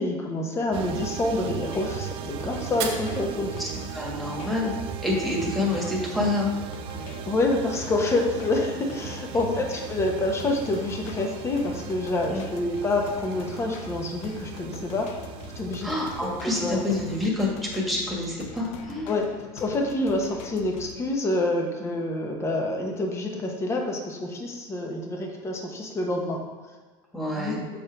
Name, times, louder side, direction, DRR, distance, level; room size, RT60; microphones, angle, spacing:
voice 1, 0.0-3.6 7.3-15.1 15.5-15.9 16.2-16.8 19.1-19.2 19.5-26.4 27.4-27.5, left 2 dB, 25° left, 2 dB, 1.1 m, -27 dB
sound 1, 0.7-17.3, right 12 dB, 50° right, 0.5 m, -38 dB
sound 2, 1.6-21.0, left 8 dB, 65° left, 0.7 m, -43 dB
Fire, 2.6-4.7, right 6 dB, 75° right, 1.7 m, -38 dB
voice 2, 3.6-4.7 5.0-6.5 12.3-12.4 15.8-19.2 27.1-27.6, left 2 dB, ahead, -4 dB, 1.8 m, -27 dB
7.4 x 4.4 x 4.7 m, 1.4 s
supercardioid pair, 130°, 12 cm